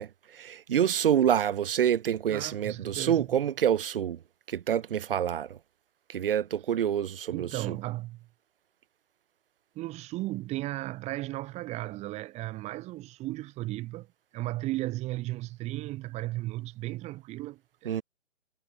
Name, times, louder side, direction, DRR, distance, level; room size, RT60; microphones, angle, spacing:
voice 1, 0.0-4.2 4.5-5.6 6.1-7.8 17.8-18.0, right 9 dB, 40° right, 2.8 m, -27 dB
voice 2, 2.3-3.3 7.3-8.3 9.7-14.1 14.3-18.0, right 18 dB, 15° right, 4.5 m, -35 dB
figure-of-eight pair, 150°, 40 cm